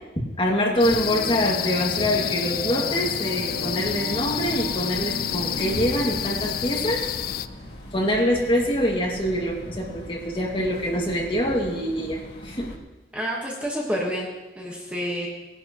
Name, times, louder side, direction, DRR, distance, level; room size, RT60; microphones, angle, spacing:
voice 1, 0.2-7.1 7.9-12.7, equal, 30° left, -2 dB, 2.2 m, -25 dB
sound 1, 0.8-7.5, left 11 dB, 55° left, 0.4 m, -29 dB
sound 2, 0.9-7.8, right 1 dB, 55° right, 1.8 m, -37 dB
sound 3, 3.5-12.8, equal, 70° left, 1.8 m, -42 dB
voice 2, 13.1-14.3 14.6-15.3, equal, 10° right, -3 dB, 1.4 m, -28 dB
19.5 x 11.0 x 3.1 m, 1.1 s
head